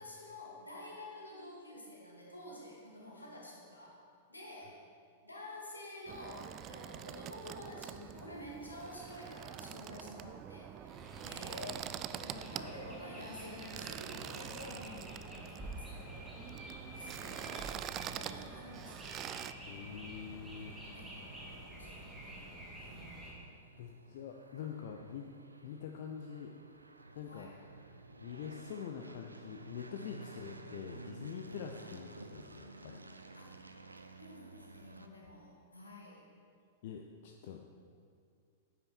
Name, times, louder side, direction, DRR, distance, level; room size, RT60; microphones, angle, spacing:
voice 1, 0.0-4.0 4.3-4.8 5.2-16.3 16.9-19.1 20.9-23.2 27.2-27.6 30.2-30.3 31.8-32.0 33.3-33.5 34.2-36.2, left 1 dB, 80° left, -3 dB, 2.4 m, -50 dB
sound 1, 6.1-19.5, right 11 dB, 30° right, 0.3 m, -45 dB
sound 2, 10.9-23.3, right 1 dB, 5° right, 2.2 m, -49 dB
voice 2, 19.7-20.8 23.8-25.3 25.6-26.5 27.1-27.5 28.2-33.0 36.8-37.6, left 8 dB, 50° left, 3 dB, 0.6 m, -45 dB
sound 3, 19.7-35.1, right 2 dB, 80° right, 0.6 m, -53 dB
9.9 x 8.8 x 4.3 m, 2.3 s
figure-of-eight pair, 100°, 0 cm